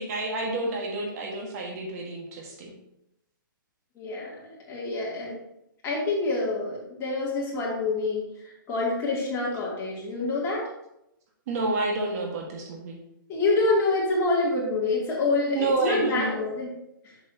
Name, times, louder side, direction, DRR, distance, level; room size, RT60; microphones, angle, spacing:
voice 1, 0.0-2.8 11.5-13.0 15.5-16.4, right 2 dB, 45° right, 0 dB, 1.7 m, -29 dB
voice 2, 4.0-5.4 5.8-10.7 13.3-16.7, left 2 dB, 20° left, -5 dB, 2.9 m, -27 dB
7.8 x 6.9 x 2.9 m, 0.83 s
hypercardioid pair, 135°, 12 cm